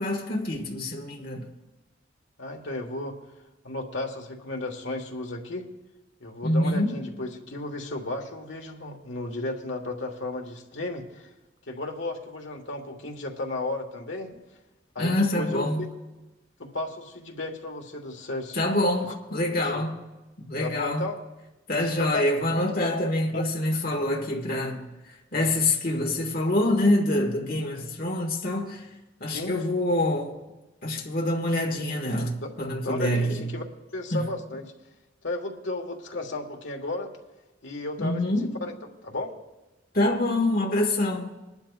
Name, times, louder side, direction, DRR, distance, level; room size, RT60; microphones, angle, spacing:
voice 1, 0.0-1.5 6.4-7.0 15.0-15.8 18.5-19.9 20.4-21.1 21.7-24.9 25.3-28.9 29.2-30.3 30.8-33.5 34.1-34.2 38.0-38.5 39.9-41.3, left 1 dB, 50° left, 1.7 m, -26 dB
voice 2, 2.4-3.2 3.6-5.7 6.2-11.3 11.7-14.3 14.9-15.6 16.6-18.6 19.6-19.9 20.6-21.2 21.7-22.6 23.3-23.4 29.3-29.6 32.4-32.5 32.8-33.6 33.9-34.7 35.2-37.1 37.6-38.3 38.6-38.7 39.0-39.3, left 2 dB, 75° left, 1.5 m, -34 dB
21.5 x 11.5 x 2.4 m
head